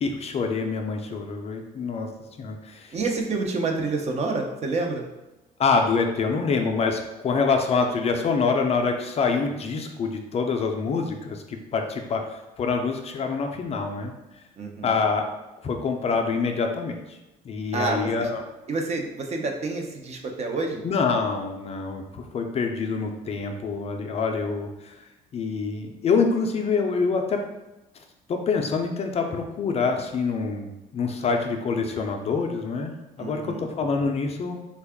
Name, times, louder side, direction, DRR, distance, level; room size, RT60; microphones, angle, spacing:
voice 1, 0.0-2.1 2.4-3.0 5.6-14.1 14.8-15.3 15.6-17.2 17.4-18.4 20.8-27.4 28.3-34.6, left 4 dB, 40° left, 4 dB, 0.4 m, -26 dB
voice 2, 2.9-5.0 14.6-14.9 17.7-18.3 18.7-20.8 33.2-33.7, right 3 dB, 40° right, 2 dB, 0.6 m, -28 dB
3.5 x 2.3 x 3.4 m, 1.0 s
cardioid pair, 110°, 17 cm